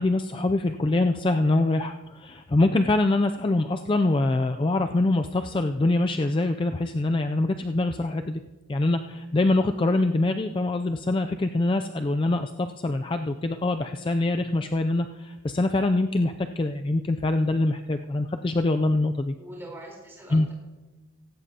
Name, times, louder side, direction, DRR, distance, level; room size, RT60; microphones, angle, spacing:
voice 1, 0.0-8.4 8.7-19.3 20.3-20.5, left 2 dB, 25° left, 7 dB, 0.3 m, -24 dB
voice 2, 19.4-20.5, right 1 dB, 10° right, -3 dB, 3.9 m, -42 dB
16.5 x 15.5 x 2.8 m, 1.2 s
head